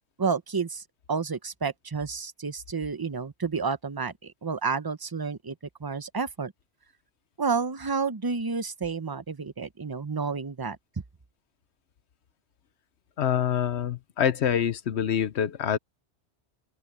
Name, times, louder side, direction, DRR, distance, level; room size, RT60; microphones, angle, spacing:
voice 1, 0.2-0.8 1.1-5.5 5.8-6.5 7.4-10.8, right 5 dB, 25° right, 0.7 m, -30 dB
voice 2, 13.2-15.8, left 9 dB, 75° left, 1.1 m, -26 dB
open air
omnidirectional pair, 1.1 m